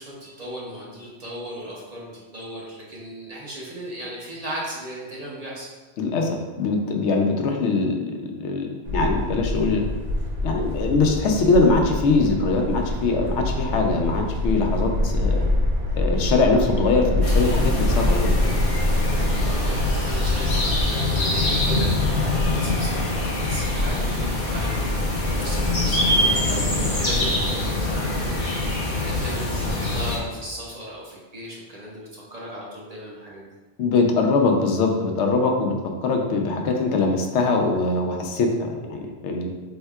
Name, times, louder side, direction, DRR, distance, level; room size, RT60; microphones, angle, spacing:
voice 1, 0.0-5.7 19.4-24.8 25.4-28.5 29.1-33.4, right 1 dB, 40° right, -4 dB, 0.8 m, -37 dB
voice 2, 6.0-9.8 10.4-15.4 15.9-18.3 33.8-35.7 36.0-39.5, left 3 dB, 90° left, 3 dB, 0.9 m, -22 dB
sound 1, 8.8-20.8, left 1 dB, 90° right, 1.1 m, -25 dB
sound 2, 17.2-30.2, left 2 dB, 35° left, 0.8 m, -24 dB
4.4 x 3.5 x 2.3 m, 1.3 s
omnidirectional pair, 1.1 m